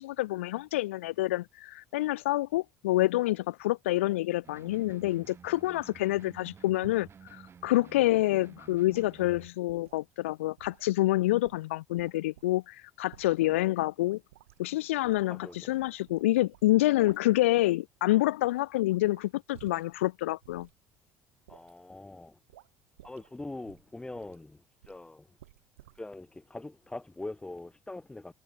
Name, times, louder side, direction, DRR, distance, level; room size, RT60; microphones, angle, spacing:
voice 1, 0.0-14.2 14.6-20.7, left 17 dB, 80° left, 0.4 m, -27 dB
sound 1, 4.4-9.5, right 7 dB, 35° right, 7.0 m, -52 dB
sound 2, 6.8-7.1 7.7-8.4 8.8-10.1 10.6-12.6 13.1-13.7 14.1-14.7 15.0-16.3 16.5-17.7 18.0-20.0 20.4-20.7 21.5-21.8 22.5-22.7 23.0-23.4 23.6-24.4 24.8-25.1 25.4-26.0, right 15 dB, 80° right, 4.1 m, -56 dB
voice 2, 15.3-15.7 21.5-22.4 23.0-25.3 26.0-28.3, left 2 dB, 10° left, 2.4 m, -43 dB
hypercardioid pair, 65°, 7 cm